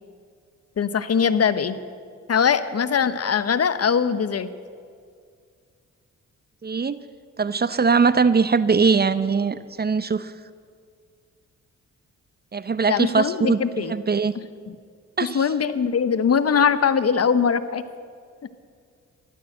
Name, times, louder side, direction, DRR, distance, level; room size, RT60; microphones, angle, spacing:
voice 1, 0.8-1.8 2.3-4.5 12.9-13.9 14.7-14.8 15.2-17.8, left 6 dB, 50° left, 13 dB, 0.9 m, -21 dB
voice 2, 6.6-7.0 7.4-10.3 12.5-13.6 13.9-14.3 15.2-15.5, right 5 dB, 30° right, 14 dB, 0.7 m, -21 dB
14.0 x 12.0 x 7.9 m, 2.1 s
supercardioid pair, 55°, 32 cm